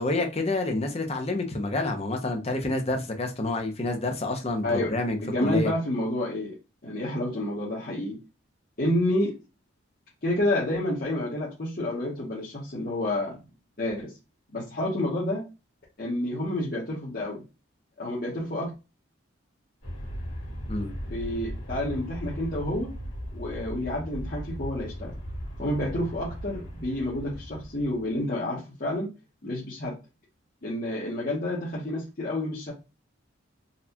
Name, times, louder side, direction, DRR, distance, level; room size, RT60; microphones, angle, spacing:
voice 1, 0.0-5.7 20.7-20.9, left 2 dB, 30° left, 4 dB, 0.7 m, -28 dB
voice 2, 4.6-4.9 5.2-6.6 6.8-8.2 8.8-9.4 10.2-13.4 13.8-14.1 14.5-15.4 16.0-17.4 18.0-18.7 21.1-22.9 23.3-25.1 25.6-29.1 29.4-30.0 30.6-32.7, left 1 dB, 50° left, -6 dB, 1.0 m, -29 dB
Aircraft, 19.8-28.2, equal, 80° left, 1.8 m, -37 dB
4.1 x 2.4 x 2.8 m, 0.28 s
head